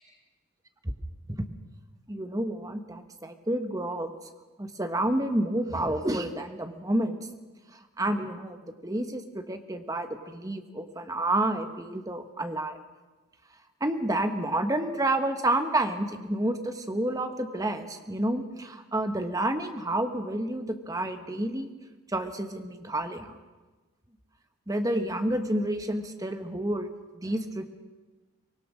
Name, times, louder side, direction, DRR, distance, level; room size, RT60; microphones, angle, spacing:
voice 1, 2.1-4.1 4.6-7.2 7.7-12.8 13.8-21.7 22.1-23.3 24.7-27.6, right 1 dB, 15° right, 7 dB, 1.2 m, -29 dB
24.0 x 19.5 x 6.3 m, 1.3 s
head